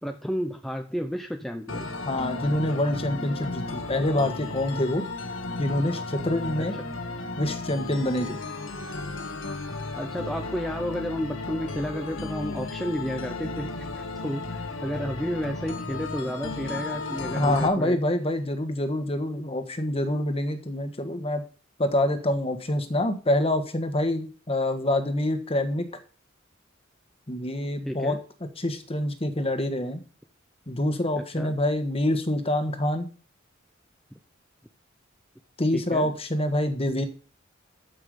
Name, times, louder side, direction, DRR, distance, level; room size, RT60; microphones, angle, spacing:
voice 1, 0.0-1.9 6.6-6.8 10.0-18.0 27.9-28.2 31.1-31.5 35.7-36.1, equal, ahead, 4 dB, 0.6 m, -32 dB
sound 1, 1.7-17.7, left 3 dB, 80° left, 1.7 m, -34 dB
voice 2, 2.0-5.0 5.6-6.7 7.4-8.4 17.3-21.4 21.8-25.9 27.3-28.2 28.6-30.0 30.7-33.1 35.6-37.1, left 1 dB, 30° left, 7 dB, 1.5 m, -26 dB
13.5 x 5.8 x 5.2 m, 0.38 s
head